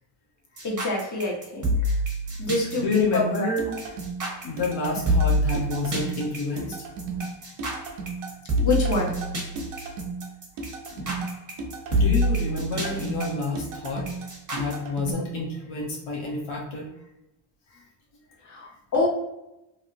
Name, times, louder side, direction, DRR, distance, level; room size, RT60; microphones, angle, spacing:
voice 1, 0.6-2.0 2.4-3.8 8.6-9.1 18.4-19.1, left 2 dB, 35° left, -2 dB, 1.2 m, -27 dB
sound 1, 0.6-14.7, equal, 35° right, 1.2 m, -27 dB
voice 2, 2.8-3.8 4.4-6.8 10.9-11.1 11.9-14.1 14.5-16.9 17.7-17.8, left 3 dB, 75° left, -2 dB, 0.9 m, -29 dB
sound 2, 3.6-15.1, right 4 dB, 90° right, 0.8 m, -35 dB
3.1 x 2.6 x 2.5 m, 0.91 s
cardioid pair, 80°, 50 cm